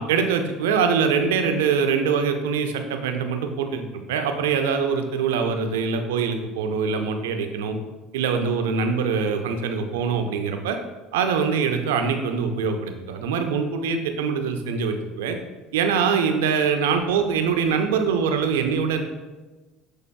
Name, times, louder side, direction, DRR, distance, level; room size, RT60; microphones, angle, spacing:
voice 1, 0.0-7.8 8.1-10.8 11.1-15.4 15.7-19.0, right 6 dB, 75° right, 6 dB, 0.4 m, -23 dB
7.1 x 3.3 x 2.2 m, 1.2 s
hypercardioid pair, 70°, 0 cm